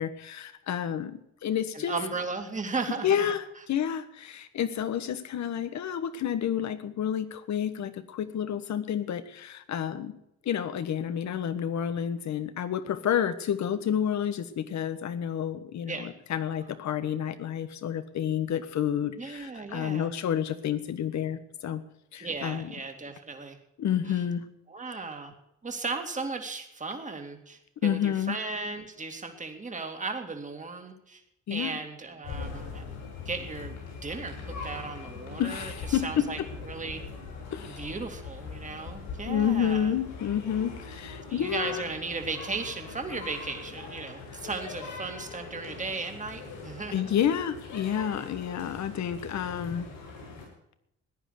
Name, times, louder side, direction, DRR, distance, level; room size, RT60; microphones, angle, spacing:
voice 1, 0.0-2.0 3.0-3.4 3.7-10.2 10.4-21.8 22.1-22.7 23.8-24.4 27.8-28.4 31.5-31.8 35.4-36.5 37.5-37.8 39.2-41.8 46.9-49.9, left 9 dB, 65° left, 12 dB, 1.4 m, -30 dB
voice 2, 1.7-3.3 15.9-16.2 19.2-20.1 22.2-23.6 24.1-24.2 24.7-25.3 25.6-31.2 31.5-32.8 33.3-36.4 36.7-37.0 37.6-39.9 41.3-47.1, right 3 dB, 25° right, 4 dB, 2.4 m, -36 dB
sound 1, 32.2-50.5, left 4 dB, 85° left, 7.8 m, -42 dB
15.5 x 10.0 x 6.5 m, 0.81 s
cardioid pair, 90°, 30 cm